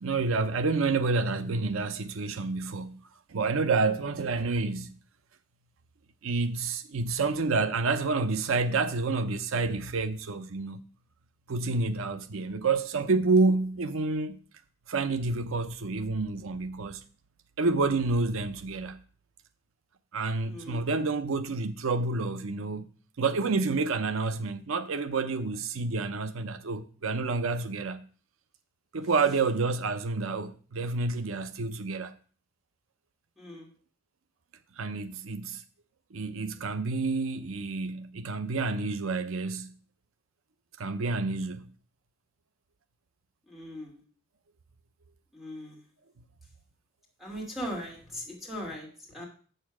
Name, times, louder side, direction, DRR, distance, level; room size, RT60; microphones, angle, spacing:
voice 1, 0.0-5.0 6.2-10.8 11.5-14.4 14.9-17.0 17.6-19.0 20.1-22.9 23.2-28.1 28.9-32.2 34.8-35.6 36.1-39.8 40.8-41.7, right 3 dB, 80° right, 0.6 m, -29 dB
voice 2, 20.5-20.8 29.2-29.4 33.4-33.7 43.5-44.0 45.3-45.8 47.2-49.3, equal, ahead, 2.5 m, -39 dB
7.4 x 6.7 x 6.0 m
head